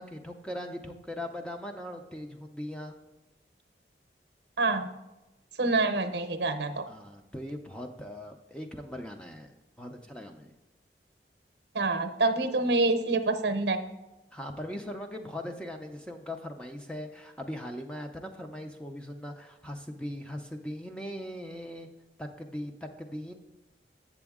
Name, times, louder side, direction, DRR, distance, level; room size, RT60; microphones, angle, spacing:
voice 1, 0.0-2.9 6.9-9.5 9.8-10.5 14.3-21.9 22.2-23.3, left 1 dB, 5° left, 4 dB, 0.4 m, -40 dB
voice 2, 4.6-4.9 5.6-6.8 11.7-13.8, right 3 dB, 70° right, 8 dB, 0.7 m, -26 dB
7.7 x 7.1 x 3.6 m, 1.0 s
head